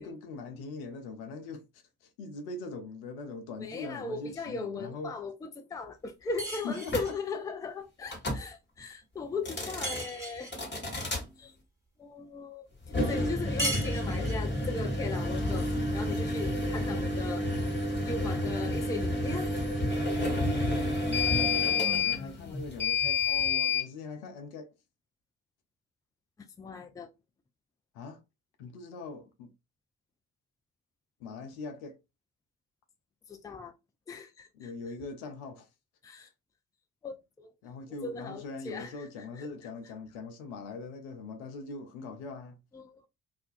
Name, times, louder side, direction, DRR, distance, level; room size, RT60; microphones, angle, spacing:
voice 1, 0.0-1.7 2.2-5.1 6.6-7.1 20.2-24.7 27.9-28.2 28.6-29.5 31.2-32.0 34.5-35.7 36.2-36.3 37.6-42.6, left 3 dB, 75° left, 0.6 m, -41 dB
voice 2, 3.6-10.5 11.4-11.5 12.0-12.7 13.1-17.5 18.0-19.5 21.7-22.5 26.6-27.1 33.3-33.7 34.1-34.7 36.0-36.3 37.0-37.5 38.0-39.5 42.7-43.1, left 4 dB, 10° left, 0.4 m, -38 dB
sound 1, 6.4-7.2 9.8-10.6 13.6-14.5, right 1 dB, 5° right, 1.3 m, -36 dB
sound 2, 6.9-7.1 8.1-8.4 9.3-10.0 10.5-11.2 12.8-23.9, left 2 dB, 25° left, 1.1 m, -30 dB
2.4 x 2.1 x 2.5 m
figure-of-eight pair, 45°, 42 cm